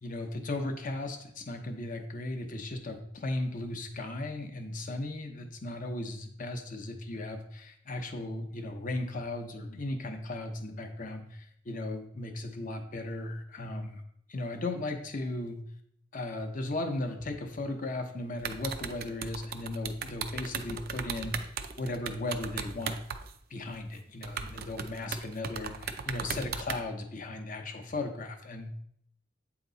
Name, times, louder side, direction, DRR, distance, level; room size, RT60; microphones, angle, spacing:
voice 1, 0.0-14.0 14.3-15.6 16.1-23.0 23.5-28.7, left 2 dB, 45° left, 4 dB, 0.8 m, -36 dB
sound 1, 18.4-23.3 23.7-23.8 24.2-26.8, right 6 dB, 50° right, 0.4 m, -37 dB
8.1 x 2.9 x 3.9 m, 0.69 s
head